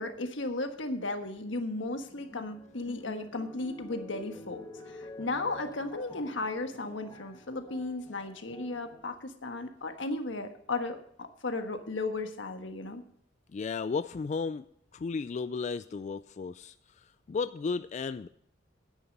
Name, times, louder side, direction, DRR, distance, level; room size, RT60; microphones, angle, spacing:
voice 1, 0.0-13.0, left 2 dB, 85° left, 6 dB, 1.4 m, -35 dB
sound 1, 1.2-1.4 1.9-9.0, left 1 dB, 20° left, 1.5 m, -49 dB
voice 2, 13.5-14.6 14.9-16.7 17.3-18.3, left 4 dB, 40° left, 13 dB, 0.3 m, -33 dB
9.8 x 9.5 x 5.3 m, 0.70 s
head